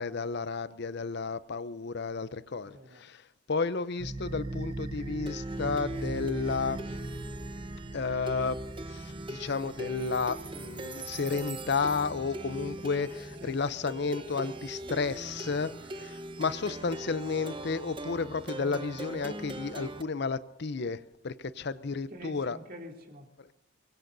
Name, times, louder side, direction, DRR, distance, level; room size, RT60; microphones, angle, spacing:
voice 1, 0.0-7.0 7.9-8.6 8.9-22.6 23.4-23.5, left 4 dB, 55° left, 15 dB, 0.6 m, -32 dB
voice 2, 2.6-3.0 13.4-13.6 13.8-13.9 22.1-23.3, equal, 45° right, 2 dB, 2.8 m, -46 dB
Plucked string instrument, 4.0-20.0, right 1 dB, 25° right, 0.9 m, -39 dB
24.0 x 22.5 x 2.7 m, 0.99 s
head